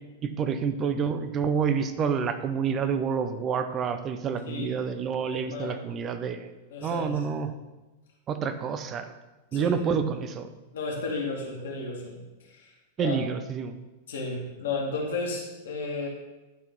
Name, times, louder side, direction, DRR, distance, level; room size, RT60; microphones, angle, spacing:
voice 1, 0.2-6.5 6.8-7.5 8.3-9.0 9.5-10.5 13.0-13.7, right 6 dB, 30° right, 9 dB, 0.8 m, -28 dB
voice 2, 5.3-5.8 6.7-7.2 9.5-9.8 10.7-12.2 12.5-12.7 13.0-13.2 14.1-16.1, left 3 dB, 65° left, -1 dB, 2.1 m, -33 dB
10.5 x 4.5 x 4.0 m, 1.1 s
figure-of-eight pair, 95°, 0 cm